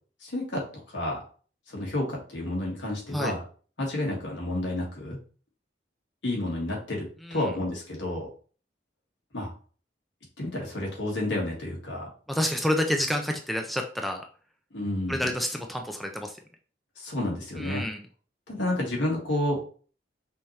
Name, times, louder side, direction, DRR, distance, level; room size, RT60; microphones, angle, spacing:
voice 1, 0.2-1.2 1.7-3.4 3.8-5.2 6.2-7.0 7.3-8.3 9.3-9.5 10.4-12.1 14.7-15.3 17.0-17.8 18.5-19.6, left 1 dB, 75° left, -2 dB, 1.7 m, -30 dB
voice 2, 12.3-14.2 15.1-16.4 17.6-18.0, left 1 dB, ahead, 3 dB, 0.4 m, -29 dB
5.5 x 2.8 x 3.2 m, 0.41 s
head